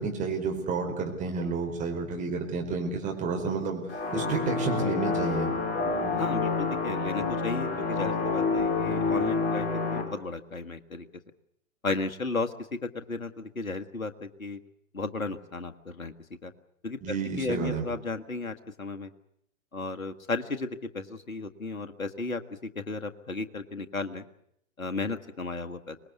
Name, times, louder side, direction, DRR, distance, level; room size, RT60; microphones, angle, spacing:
voice 1, 0.0-3.8 4.1-5.5 17.0-17.8, right 4 dB, 20° right, 2 dB, 5.1 m, -30 dB
sound 1, 3.9-10.0, left 4 dB, 20° left, 4.5 m, -28 dB
voice 2, 6.1-11.1 11.8-12.5 12.8-14.6 14.9-16.1 16.4-16.5 16.8-17.0 17.4-19.1 19.7-22.4 22.8-24.2 24.8-26.0, left 3 dB, 80° left, 8 dB, 1.8 m, -34 dB
25.0 x 20.5 x 8.4 m, 0.73 s
figure-of-eight pair, 115°, 41 cm